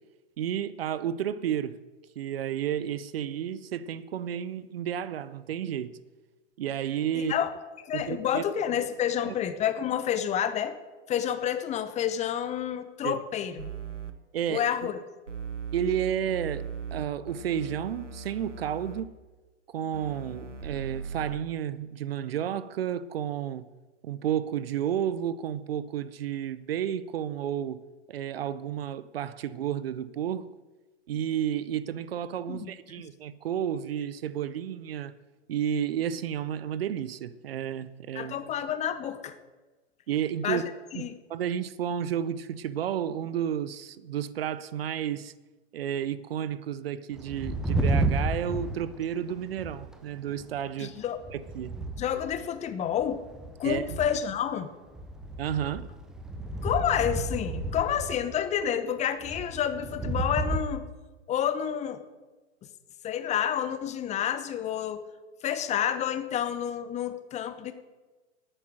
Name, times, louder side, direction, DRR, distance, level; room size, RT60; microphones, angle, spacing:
voice 1, 0.4-1.8 2.2-6.0 6.6-7.3 7.9-8.4 9.2-9.3 13.0-13.2 14.3-14.9 15.7-19.1 19.7-23.7 24.0-27.8 28.1-30.5 31.1-35.2 35.5-38.4 40.1-40.6 40.9-45.3 45.7-51.0 51.3-51.8 53.6-53.8 55.4-55.9, right 9 dB, 55° right, 0.7 m, -31 dB
voice 2, 7.1-7.5 7.8-10.8 11.1-13.7 14.5-15.0 32.5-32.7 38.1-39.3 40.4-40.6 40.9-41.1 50.8-51.2 52.0-53.2 53.6-54.7 56.6-60.9 61.3-62.0 63.0-65.0 65.4-67.7, left 9 dB, 20° left, 0.9 m, -29 dB
sound 1, 13.6-14.1 15.3-19.0 19.9-21.4, right 5 dB, 85° right, 1.3 m, -38 dB
sound 2, 47.2-50.0 50.2-50.6 51.0-52.4 53.0-54.3 54.9-58.6 59.2-60.6, right 2 dB, ahead, 0.3 m, -32 dB
11.5 x 8.9 x 8.9 m
figure-of-eight pair, 100°, 36 cm